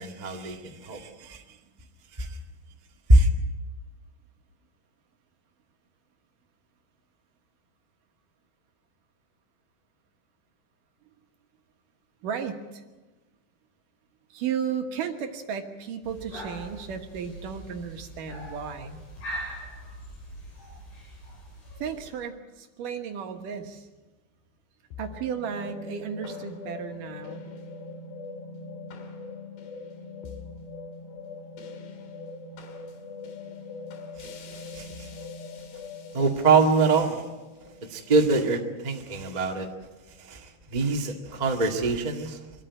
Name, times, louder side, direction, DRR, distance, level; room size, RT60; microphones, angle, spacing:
voice 1, 0.0-1.4 2.2-2.4 3.1-3.3 34.7-35.1 36.1-37.2 37.9-39.7 40.2-42.4, right 3 dB, 35° right, 2 dB, 0.6 m, -24 dB
voice 2, 12.2-12.8 14.3-19.0 21.8-23.9 25.0-27.5, right 7 dB, 65° right, 5 dB, 2.7 m, -34 dB
sound 1, 16.0-22.1, right 1 dB, 60° left, 8.6 m, -41 dB
sound 2, 24.9-39.3, left 4 dB, 85° left, 4.1 m, -42 dB
25.0 x 14.0 x 9.8 m, 1.2 s
omnidirectional pair, 4.7 m